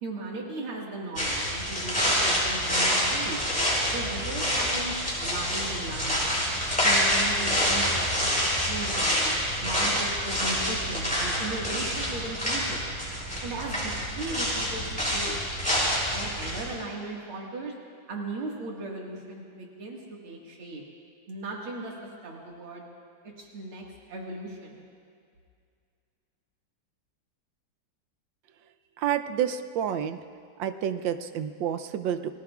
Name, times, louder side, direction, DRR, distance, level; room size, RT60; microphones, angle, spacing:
voice 1, 0.0-3.4 3.9-6.4 6.8-12.9 13.4-15.4 16.1-17.7 18.1-20.8 21.3-21.9 22.2-22.8 23.4-24.8, right 2 dB, 90° right, -2 dB, 2.7 m, -37 dB
sound 1, 1.2-16.7, equal, 5° left, 5.2 m, -27 dB
voice 2, 29.0-30.2 30.6-32.4, right 9 dB, 70° right, 9 dB, 1.3 m, -29 dB
29.5 x 20.0 x 2.4 m, 2.3 s
omnidirectional pair, 2.3 m